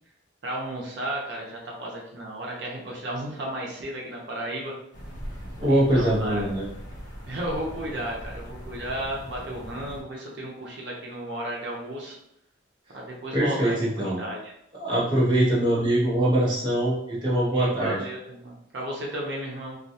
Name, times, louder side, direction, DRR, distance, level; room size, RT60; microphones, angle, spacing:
voice 1, 0.4-4.7 5.7-6.5 7.3-12.2 12.9-14.5 17.5-19.8, right 1 dB, 65° right, -2 dB, 0.6 m, -34 dB
sound 1, 4.9-10.0, equal, 65° left, 1.0 m, -40 dB
voice 2, 5.6-6.7 13.3-14.2 14.8-18.0, right 1 dB, 25° right, -7 dB, 0.6 m, -23 dB
2.4 x 2.2 x 2.6 m, 0.77 s
head